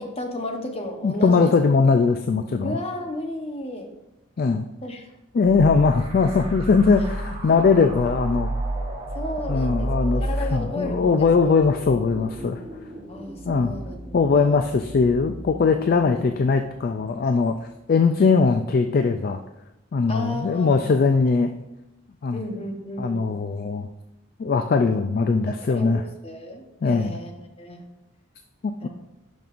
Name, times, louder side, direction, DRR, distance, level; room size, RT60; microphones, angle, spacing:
voice 1, 0.0-1.5 2.6-3.9 4.8-5.1 7.5-7.6 9.1-9.9 10.2-11.3 13.1-14.6 16.0-16.4 20.1-20.9 22.3-23.3 25.5-27.3 27.6-27.8 28.8-28.9, left 1 dB, 25° left, 3 dB, 0.9 m, -33 dB
voice 2, 1.0-2.8 4.4-4.6 5.3-8.5 9.5-12.6 13.5-13.7 14.1-17.6 17.9-19.4 19.9-21.5 22.2-22.4 23.0-23.9 24.4-26.0 26.8-27.2 28.6-28.9, left 4 dB, 40° left, 6 dB, 0.3 m, -20 dB
sound 1, 5.4-16.8, right 1 dB, 25° right, 1.2 m, -32 dB
11.5 x 5.4 x 2.5 m, 0.95 s
head